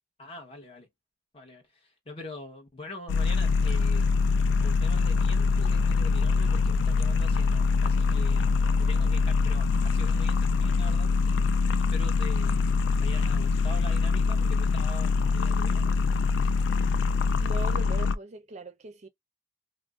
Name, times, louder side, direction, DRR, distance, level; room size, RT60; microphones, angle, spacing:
voice 1, 0.2-0.9 1.3-4.1 4.6-8.5 8.8-11.2 11.9-16.3, left 2 dB, 30° left, 0.9 m, -44 dB
sound 1, 3.1-18.2, left 4 dB, 80° left, 0.3 m, -24 dB
voice 2, 17.4-19.1, right 3 dB, 40° right, 0.5 m, -40 dB
2.5 x 2.0 x 3.4 m
head